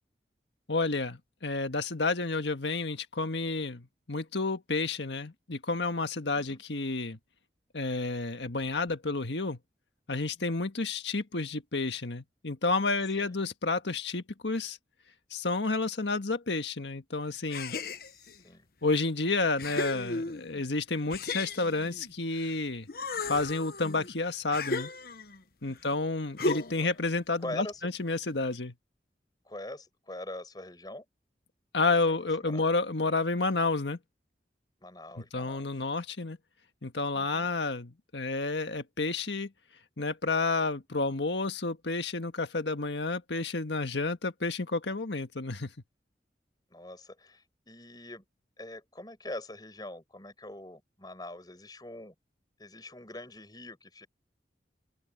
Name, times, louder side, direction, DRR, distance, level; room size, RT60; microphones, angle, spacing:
voice 1, 0.7-7.2 7.7-9.6 10.1-14.8 15.3-17.8 18.8-22.9 23.3-24.9 25.6-28.7 31.7-34.0 35.2-36.4 36.8-39.5 40.0-45.7, left 3 dB, 90° left, 1.7 m, -30 dB
sound 1, 17.5-18.4 19.0-19.1 19.6-20.6 21.1-22.5 22.9-25.4 26.4-26.9, left 3 dB, 55° left, 1.0 m, -35 dB
voice 2, 18.1-18.7 25.7-26.0 26.8-26.9 27.4-27.9 29.4-31.1 31.9-32.6 34.8-35.9 37.1-37.5 46.7-48.2 48.6-52.1 52.6-54.1, left 1 dB, 25° left, 5.8 m, -44 dB
open air
head